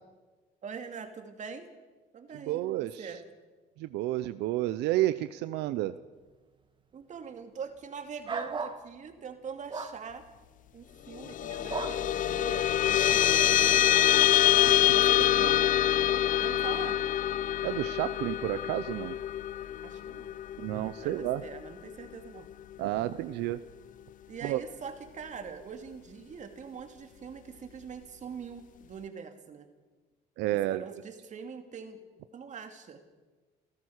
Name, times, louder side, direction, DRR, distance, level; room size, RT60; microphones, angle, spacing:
voice 1, 0.6-1.7 2.1-3.2 6.9-10.2 10.7-14.1 14.8-15.6 16.4-17.0 19.8-20.3 21.0-22.5 24.3-29.7 30.5-32.0 32.3-33.0, right 6 dB, 45° right, 6 dB, 2.5 m, -43 dB
voice 2, 2.5-3.1 3.8-5.9 15.2-15.5 17.6-19.2 20.6-21.4 22.8-23.6 24.4-24.6 30.4-30.8, right 15 dB, 85° right, 13 dB, 0.7 m, -31 dB
sound 1, 8.2-8.8 9.7-10.0 11.7-12.0, right 4 dB, 30° right, 1.6 m, -34 dB
sound 2, 11.1-21.9, left 12 dB, 50° left, 0.5 m, -25 dB
29.0 x 14.0 x 6.5 m, 1.3 s
cardioid pair, 110°, 17 cm